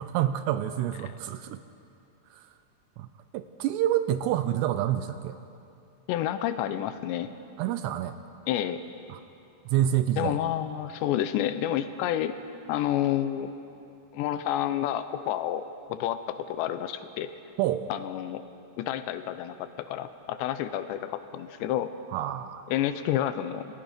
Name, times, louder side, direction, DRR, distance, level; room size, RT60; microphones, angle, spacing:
voice 1, 0.0-1.6 2.3-2.4 3.0-3.1 3.3-5.4 7.6-8.2 9.1-9.2 9.7-10.4 17.6-17.9 22.1-22.7, right 12 dB, 80° right, 11 dB, 2.6 m, -27 dB
voice 2, 6.1-7.3 8.5-8.8 10.2-12.3 12.7-13.5 14.1-17.3 17.9-18.4 18.8-21.9 22.7-23.7, left 11 dB, 80° left, 11 dB, 2.8 m, -29 dB
27.0 x 18.5 x 5.1 m, 2.6 s
omnidirectional pair, 5.2 m